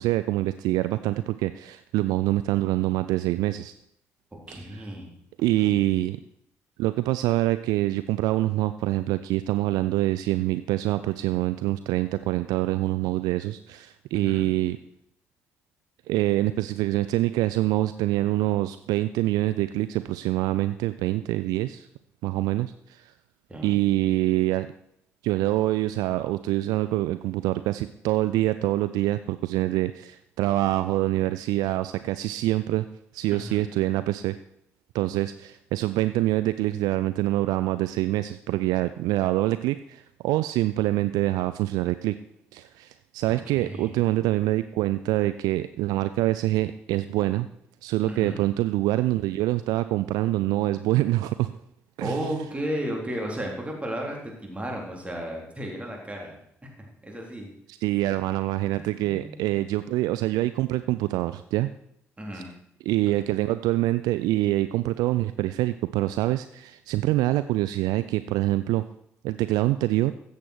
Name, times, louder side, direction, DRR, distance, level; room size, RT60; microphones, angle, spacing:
voice 1, 0.0-3.7 4.5-4.6 5.4-6.2 6.8-14.8 16.1-21.9 22.2-23.1 23.6-24.7 25.2-32.8 33.1-34.3 34.9-42.2 42.5-47.5 47.8-51.5 52.0-52.2 57.7-61.7 62.3-62.4 62.9-68.8 69.2-70.1, right 16 dB, 65° right, 13 dB, 0.4 m, -25 dB
voice 2, 4.5-5.2 5.6-5.8 14.1-14.5 23.5-23.8 33.3-33.6 43.3-44.0 48.1-48.4 52.0-56.4 57.0-57.5 58.7-59.6 62.2-62.5 63.1-63.3, equal, 15° right, 0 dB, 3.7 m, -34 dB
14.0 x 8.2 x 4.5 m, 0.73 s
figure-of-eight pair, 45°, 7 cm